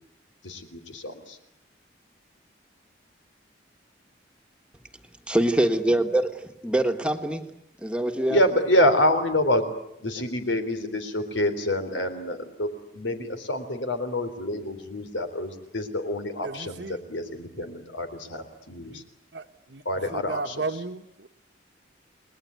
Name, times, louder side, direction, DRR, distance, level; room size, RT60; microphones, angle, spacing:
voice 1, 0.4-1.4 8.3-9.7 10.0-19.0 19.9-20.6, left 1 dB, 85° left, 3.7 m, -27 dB
voice 2, 5.3-7.4 7.8-8.4, right 1 dB, 5° right, 1.5 m, -24 dB
voice 3, 16.4-17.0 18.9-19.0 19.3-19.8 20.1-21.3, right 3 dB, 65° right, 1.3 m, -34 dB
30.0 x 20.5 x 9.5 m
head